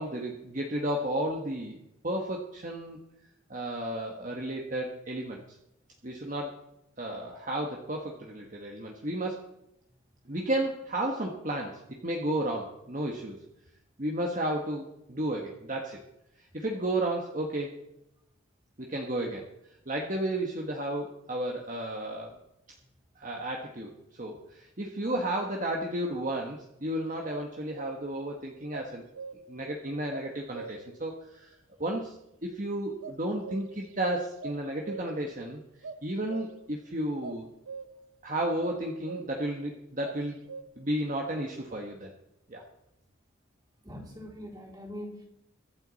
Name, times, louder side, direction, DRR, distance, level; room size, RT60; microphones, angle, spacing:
voice 1, 0.0-1.8 2.0-3.0 3.5-5.4 6.0-6.5 7.0-9.5 10.3-13.4 14.0-16.0 16.4-17.7 18.8-19.4 19.9-22.4 23.2-29.0 29.5-31.5 31.8-32.2 32.4-35.6 36.0-37.5 38.2-40.4 40.8-42.1 42.5-42.6, right 1 dB, 40° right, 1 dB, 1.4 m, -33 dB
sound 1, 26.3-26.6 27.3-28.2 28.7-29.6 30.1-31.0 33.0-34.0 34.3-35.4 35.8-36.8 37.2-38.1 38.6-39.5 40.0-40.6, right 4 dB, 85° right, 0.8 m, -43 dB
voice 2, 43.8-45.2, equal, 20° right, -2 dB, 3.6 m, -42 dB
23.5 x 8.1 x 4.1 m, 0.84 s
head